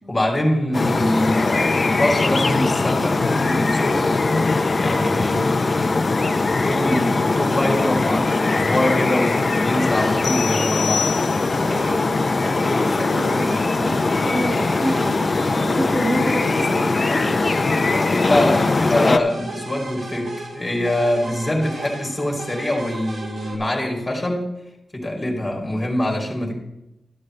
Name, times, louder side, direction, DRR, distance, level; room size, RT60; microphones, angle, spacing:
voice 1, 0.1-4.2 4.8-11.1 18.2-24.5 24.9-26.5, left 1 dB, 15° left, 0 dB, 3.5 m, -24 dB
sound 1, 0.7-19.2, left 3 dB, 35° left, 0.7 m, -20 dB
sound 2, 10.2-11.8, left 7 dB, 65° left, 0.6 m, -28 dB
sound 3, 11.5-23.5, right 2 dB, 65° right, 3.2 m, -36 dB
voice 2, 11.6-17.0, right 1 dB, 10° right, -4 dB, 2.2 m, -29 dB
13.5 x 12.0 x 3.3 m, 0.87 s
wide cardioid pair, 125°, 0 cm